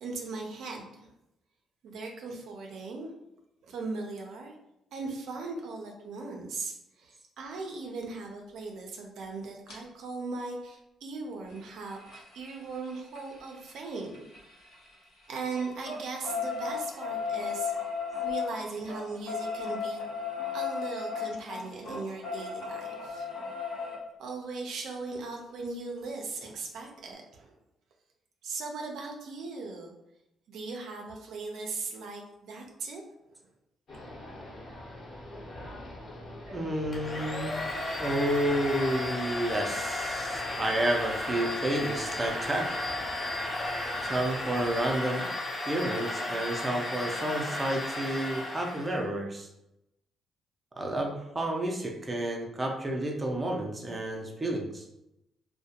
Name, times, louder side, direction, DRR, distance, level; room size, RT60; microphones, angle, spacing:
voice 1, 0.0-1.1 1.8-3.1 3.6-4.6 4.9-14.2 15.3-17.7 18.2-20.0 20.5-23.3 24.2-27.6 28.4-29.9 30.5-33.0, right 3 dB, 75° right, 1 dB, 0.4 m, -38 dB
sound 1, 9.7-9.8 11.4-14.9 15.2-24.0 25.6-25.7 26.0-26.1 26.4-26.5, left 6 dB, 75° left, 0.7 m, -36 dB
sound 2, 33.9-45.0, left 1 dB, 55° left, 1.0 m, -45 dB
voice 2, 36.5-37.6 38.0-42.7 44.0-45.3 45.7-49.5 50.8-54.8, right 1 dB, 20° right, 1 dB, 0.5 m, -30 dB
Domestic sounds home sounds, 36.9-49.0, left 2 dB, 35° left, 0.5 m, -34 dB
2.3 x 2.1 x 2.8 m, 0.86 s
cardioid pair, 90°, 0 cm